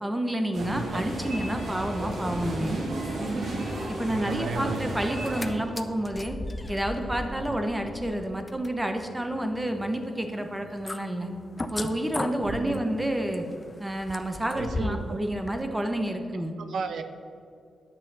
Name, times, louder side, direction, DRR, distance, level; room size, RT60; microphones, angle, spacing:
voice 1, 0.0-2.8 3.9-6.4 6.7-11.3 11.7-13.4 13.8-16.5, right 1 dB, 10° right, 6 dB, 0.9 m, -29 dB
sound 1, 0.5-5.5, right 1 dB, 55° right, 2.5 m, -33 dB
voice 2, 0.6-1.0 4.0-4.8 7.4-7.6 12.4-12.9 14.5-15.2 16.6-17.0, right 5 dB, 80° right, 9 dB, 0.8 m, -35 dB
sound 2, 5.2-5.5 5.8-15.1 15.5-15.6, left 2 dB, 20° left, 0.5 m, -37 dB
10.5 x 5.6 x 7.9 m, 2.3 s
wide cardioid pair, 155°, 0 cm